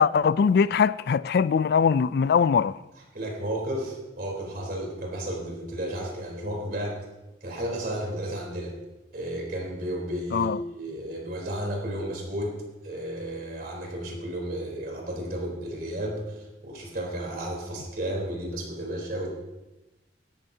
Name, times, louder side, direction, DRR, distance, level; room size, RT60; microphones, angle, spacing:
voice 1, 0.0-2.8 10.3-10.6, left 6 dB, 60° left, 0.3 m, -21 dB
voice 2, 3.1-7.0 7.4-8.7 9.1-12.5 12.8-19.3, right 1 dB, 55° right, 3.7 m, -33 dB
16.0 x 12.0 x 2.8 m
head